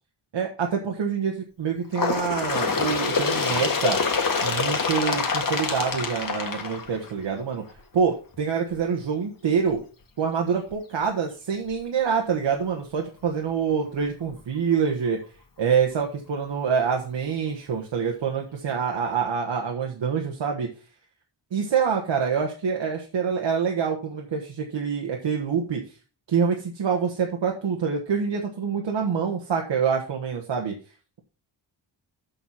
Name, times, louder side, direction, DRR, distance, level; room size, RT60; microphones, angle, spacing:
voice 1, 0.3-4.0 4.4-7.6 7.9-9.8 10.2-15.2 15.6-20.7 21.5-25.8 26.3-30.7, right 6 dB, 90° right, 1 dB, 1.5 m, -26 dB
Bird, 1.9-7.4 8.2-8.4 8.7-8.8 9.7-9.8 10.7-10.8 11.7-11.8, left 4 dB, 50° left, 1.6 m, -26 dB
7.2 x 6.6 x 5.7 m, 0.36 s
wide cardioid pair, 170°, 44 cm